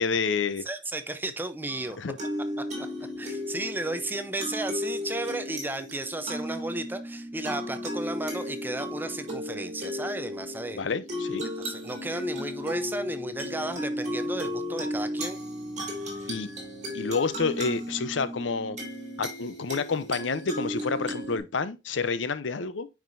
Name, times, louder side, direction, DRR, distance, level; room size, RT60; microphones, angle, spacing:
voice 1, 0.0-0.6 2.0-2.2 10.7-11.4 16.3-16.5 16.9-18.8 19.2-22.9, left 4 dB, 90° left, 0.6 m, -29 dB
voice 2, 0.7-2.0 2.6-2.7 3.2-10.8 11.6-15.4 16.0-16.1, right 2 dB, 10° right, 0.6 m, -34 dB
sound 1, 1.7-21.4, left 1 dB, 40° right, 2.6 m, -35 dB
9.2 x 4.8 x 2.6 m
head